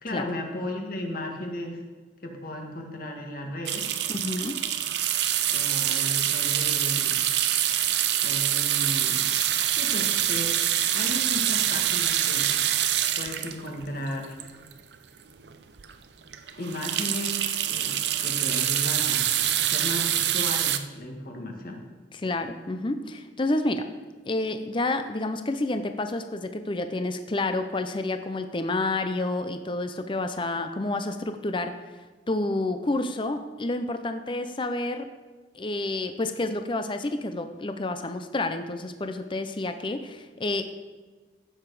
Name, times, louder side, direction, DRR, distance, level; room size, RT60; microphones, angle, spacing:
voice 1, 0.0-1.8 2.2-3.9 5.5-7.3 8.2-9.3 9.7-10.5 10.9-12.5 13.2-14.4 16.6-17.4 17.7-21.8, left 1 dB, 50° left, 2 dB, 1.8 m, -35 dB
sound 1, 3.7-15.0 15.4-15.5 15.8-15.9 16.3-20.8, right 11 dB, 65° right, 0.6 m, -25 dB
voice 2, 4.1-4.6 22.2-23.9 24.3-31.8 32.3-35.1 35.5-40.6, left 2 dB, 25° left, 8 dB, 0.6 m, -29 dB
15.5 x 6.9 x 4.9 m, 1.4 s
head